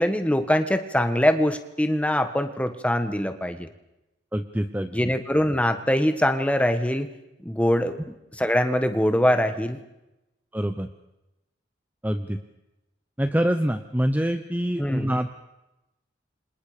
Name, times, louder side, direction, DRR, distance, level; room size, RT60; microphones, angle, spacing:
voice 1, 0.0-3.7 4.9-7.1 7.4-8.0 8.4-9.8 14.8-15.1, equal, 5° left, 7 dB, 1.6 m, -23 dB
voice 2, 4.3-5.0 10.5-10.9 12.0-12.4 13.2-15.3, equal, 10° right, 8 dB, 0.9 m, -25 dB
30.0 x 26.5 x 5.1 m, 0.95 s
head